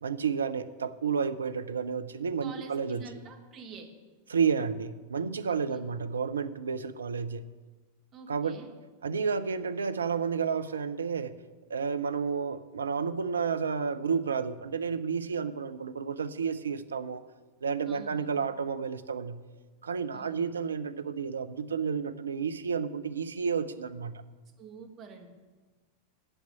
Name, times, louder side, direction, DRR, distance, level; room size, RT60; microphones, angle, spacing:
voice 1, 0.0-3.0 4.3-7.5 8.3-8.6 9.0-11.4 11.7-17.2 17.6-19.4 19.8-24.2, right 6 dB, 70° right, 11 dB, 0.5 m, -31 dB
voice 2, 2.4-3.9 5.5-5.8 8.1-8.7 17.9-18.3 20.1-20.5 24.6-25.3, right 4 dB, 30° right, 2 dB, 1.7 m, -47 dB
8.9 x 7.4 x 8.1 m, 1.3 s
figure-of-eight pair, 90°, 0 cm